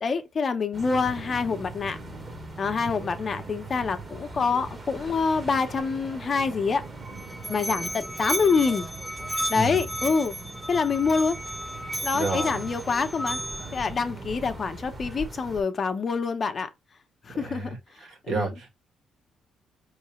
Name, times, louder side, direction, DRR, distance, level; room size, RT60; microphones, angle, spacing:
voice 1, 0.0-2.0 2.6-6.8 7.5-8.9 9.5-10.4 10.7-11.4 12.0-13.4 13.7-16.7 17.3-17.7 18.3-18.5, left 5 dB, 45° left, 0.8 m, -26 dB
sound 1, 0.7-15.6, right 2 dB, 25° right, 1.4 m, -40 dB
Musical instrument, 6.8-13.8, equal, ahead, 0.7 m, -34 dB
voice 2, 9.5-9.9 12.1-12.7 17.3-18.7, right 3 dB, 70° right, 1.9 m, -31 dB
4.7 x 3.2 x 3.1 m
cardioid pair, 90°, 0 cm